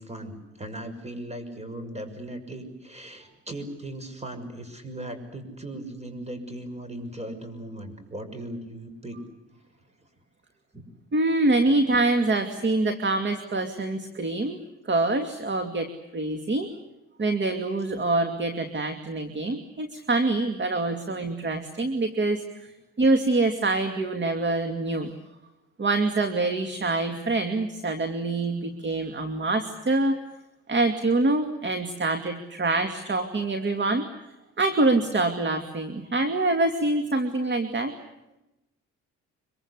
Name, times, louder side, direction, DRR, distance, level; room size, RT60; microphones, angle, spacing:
voice 1, 0.0-9.2 10.7-10.8, right 1 dB, 20° right, 9 dB, 6.5 m, -38 dB
voice 2, 11.1-14.6 14.9-16.7 17.2-22.7 23.0-25.2 25.8-30.2 30.7-34.1 34.6-37.9, right 2 dB, 35° right, 7 dB, 2.6 m, -25 dB
25.0 x 23.5 x 8.4 m, 0.95 s
cardioid pair, 90°, 30 cm